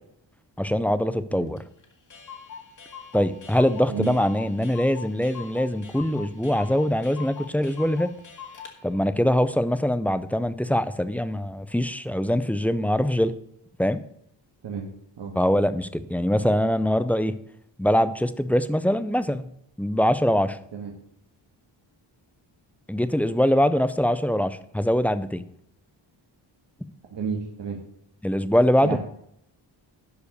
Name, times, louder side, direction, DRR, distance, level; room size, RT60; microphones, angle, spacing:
voice 1, 0.6-1.6 3.1-8.1 8.8-13.3 13.8-14.0 15.3-17.4 17.8-19.5 19.8-20.6 22.9-25.4 28.2-29.0, equal, 5° left, 13 dB, 0.4 m, -23 dB
Clock, 1.6-1.7 1.8-8.8, left 7 dB, 40° left, 1.9 m, -42 dB
voice 2, 27.1-27.8 28.8-29.0, right 6 dB, 70° right, 1 dB, 1.6 m, -31 dB
11.5 x 4.9 x 6.6 m, 0.73 s
wide cardioid pair, 155°, 45 cm